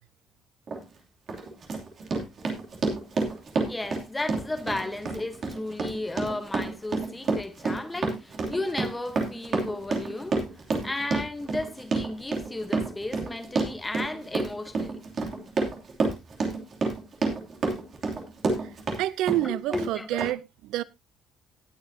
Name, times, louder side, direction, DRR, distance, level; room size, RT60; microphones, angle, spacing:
Run, 0.7-0.8 1.3-19.0 19.3-19.9 20.2-20.3, right 3 dB, 35° right, 2.8 m, -29 dB
voice 1, 3.6-10.4 10.8-15.0 19.4-20.2, left 2 dB, 10° left, 1.1 m, -34 dB
voice 2, 18.6-20.8, right 15 dB, 80° right, 0.5 m, -29 dB
19.0 x 6.6 x 2.8 m
cardioid pair, 170°, 0 cm